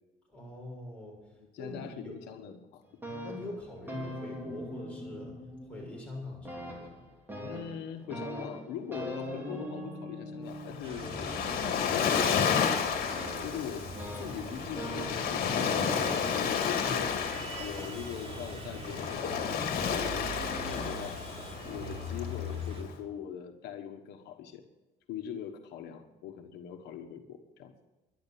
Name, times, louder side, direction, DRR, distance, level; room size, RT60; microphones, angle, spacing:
voice 1, 0.3-1.2 1.6-2.2 3.2-5.3 5.6-7.0 16.8-17.0, left 1 dB, 5° left, -3 dB, 6.5 m, -43 dB
voice 2, 1.4-2.8 7.4-13.0 13.4-13.9 14.2-16.0 16.3-21.2 21.6-24.6 25.1-27.7, left 8 dB, 85° left, 6 dB, 1.3 m, -42 dB
sound 1, 2.8-6.1 6.5-18.0 18.9-19.7 20.4-20.8, equal, 10° right, 3.4 m, -42 dB
Waves surf, 10.5-22.9, left 7 dB, 60° left, 2.5 m, -32 dB
sound 2, 10.8-22.8, equal, 35° right, 3.0 m, -42 dB
11.5 x 11.0 x 8.5 m, 1.1 s
cardioid pair, 110°, 17 cm